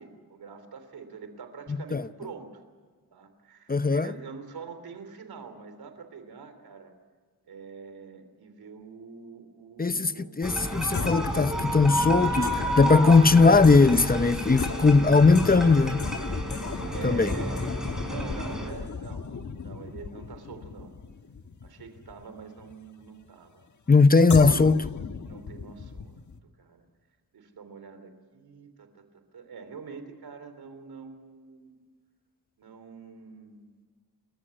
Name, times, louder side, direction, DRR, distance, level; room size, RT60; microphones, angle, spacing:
voice 1, 0.0-2.6 3.1-6.9 7.4-10.3 16.9-19.3 19.6-20.9 21.6-23.6 25.2-26.2 26.6-26.8 27.3-31.7 32.6-33.7, right 5 dB, 85° right, 3.2 m, -45 dB
voice 2, 1.7-2.1 3.7-4.1 9.8-16.1 17.0-17.3 23.9-24.9, left 4 dB, 25° left, 0.8 m, -19 dB
sound 1, 10.4-18.7, equal, ahead, 5.5 m, -31 dB
sound 2, 10.9-22.7 24.3-26.4, left 5 dB, 55° left, 1.4 m, -35 dB
29.5 x 14.5 x 9.0 m
cardioid pair, 65°, 36 cm